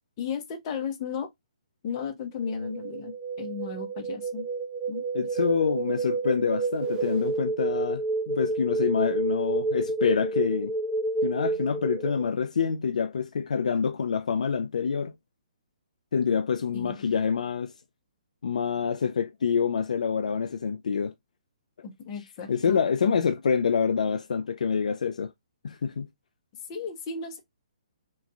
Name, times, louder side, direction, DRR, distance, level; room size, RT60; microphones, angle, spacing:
voice 1, 0.2-1.3 1.8-4.4 4.9-5.3 16.7-17.0 21.8-23.1 26.7-27.4, left 6 dB, 35° left, 0.8 m, -35 dB
sound 1, 2.4-12.3, right 3 dB, 15° right, 0.5 m, -30 dB
voice 2, 5.1-10.7 11.2-15.2 16.1-17.7 18.4-21.1 22.5-25.3 25.6-26.1, left 6 dB, 75° left, 0.3 m, -26 dB
3.0 x 2.5 x 2.3 m
hypercardioid pair, 140°, 4 cm